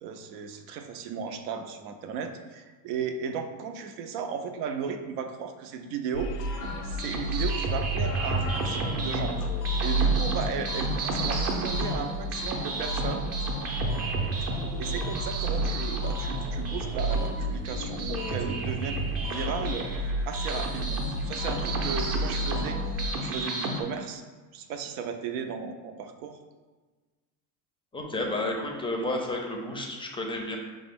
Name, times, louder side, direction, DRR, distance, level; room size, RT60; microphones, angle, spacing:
voice 1, 0.0-9.3 9.8-13.2 14.8-19.9 20.3-22.8 23.1-24.2 24.5-26.4, right 6 dB, 80° right, 7 dB, 0.6 m, -35 dB
sound 1, 6.1-23.1, right 1 dB, 90° left, 0.6 m, -31 dB
sound 2, 6.6-23.8, right 3 dB, 30° right, 0.6 m, -33 dB
voice 2, 27.9-30.6, left 1 dB, 10° left, 1 dB, 0.4 m, -31 dB
5.0 x 2.1 x 3.6 m, 1.3 s
supercardioid pair, 100°, 47 cm